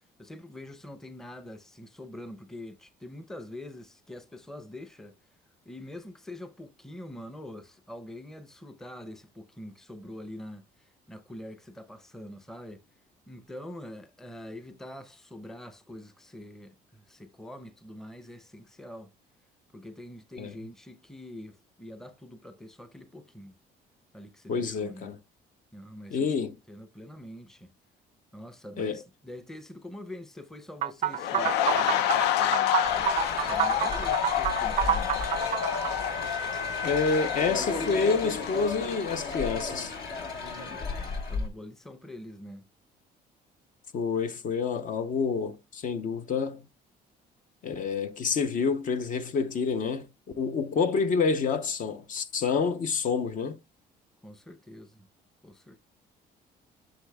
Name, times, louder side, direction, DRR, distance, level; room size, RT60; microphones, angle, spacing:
voice 1, 0.2-5.2 5.7-12.8 13.3-19.1 19.7-23.6 24.1-25.1 25.7-27.7 28.3-35.2 40.7-42.7 54.2-55.1 55.4-55.8, left 1 dB, 5° left, 0.6 m, -45 dB
voice 2, 24.5-25.2 26.1-26.5 28.8-29.0 36.8-39.9 43.9-46.6 47.6-50.1 50.4-53.6, left 5 dB, 50° left, 0.7 m, -28 dB
sound 1, 30.8-35.9, right 11 dB, 45° right, 0.4 m, -28 dB
sound 2, 31.1-40.0 40.3-40.5, left 11 dB, 85° left, 0.5 m, -29 dB
sound 3, 32.8-41.5, left 4 dB, 65° left, 1.4 m, -34 dB
8.1 x 6.3 x 2.3 m
cardioid pair, 110°, 17 cm